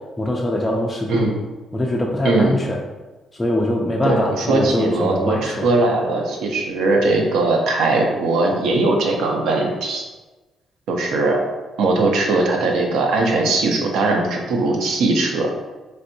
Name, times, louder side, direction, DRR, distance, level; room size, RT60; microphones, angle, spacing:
voice 1, 0.2-1.2 1.7-2.8 3.3-5.7, left 1 dB, 10° left, -2 dB, 0.3 m, -22 dB
voice 2, 4.0-10.0 10.9-11.4 11.8-15.5, right 2 dB, 85° right, 1 dB, 0.6 m, -19 dB
3.2 x 2.6 x 2.6 m, 1.2 s
cardioid pair, 155°, 0 cm